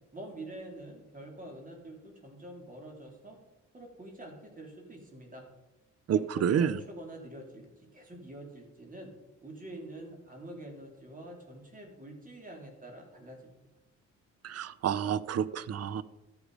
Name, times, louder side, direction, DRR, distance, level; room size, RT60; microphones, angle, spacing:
voice 1, 0.1-3.4 3.7-5.4 6.1-9.1 9.4-13.5, right 1 dB, 25° right, 2 dB, 3.6 m, -46 dB
voice 2, 6.1-6.8 14.4-16.0, right 8 dB, 55° right, 18 dB, 0.7 m, -29 dB
13.0 x 8.2 x 5.0 m, 0.99 s
cardioid pair, 90°, 30 cm